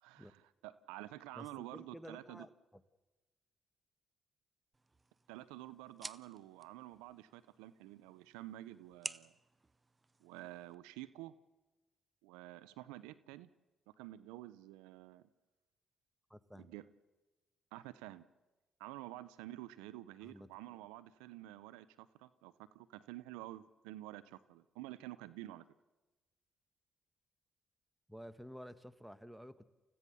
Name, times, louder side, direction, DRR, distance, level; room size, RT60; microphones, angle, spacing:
voice 1, 0.0-2.5 5.3-9.3 10.2-11.3 12.2-13.5 13.9-15.2 16.6-16.9 17.7-18.3 18.8-25.7, right 16 dB, 90° right, 16 dB, 0.6 m, -50 dB
voice 2, 1.3-2.5 16.3-16.7 20.2-20.5 28.1-29.6, equal, ahead, 13 dB, 1.4 m, -51 dB
sound 1, 4.7-10.8, right 3 dB, 25° right, 0.7 m, -52 dB
29.0 x 15.5 x 6.9 m, 1.2 s
supercardioid pair, 55°, 0 cm